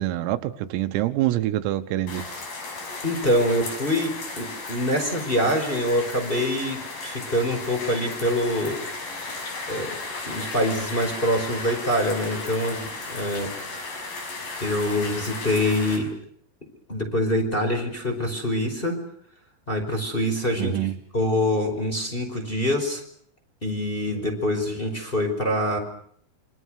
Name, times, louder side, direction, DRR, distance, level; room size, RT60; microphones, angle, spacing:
voice 1, 0.0-2.2 20.6-21.0, right 14 dB, 85° right, 10 dB, 4.0 m, -25 dB
sound 1, 2.1-16.0, left 3 dB, 45° left, 6.9 m, -35 dB
voice 2, 3.0-8.8 9.7-9.9 10.3-13.5 13.7-14.1 14.6-16.1 16.9-19.0 19.7-20.8 21.1-23.0 23.6-25.8, left 1 dB, 10° left, 2 dB, 4.9 m, -25 dB
27.5 x 25.0 x 6.5 m, 0.64 s
omnidirectional pair, 6.0 m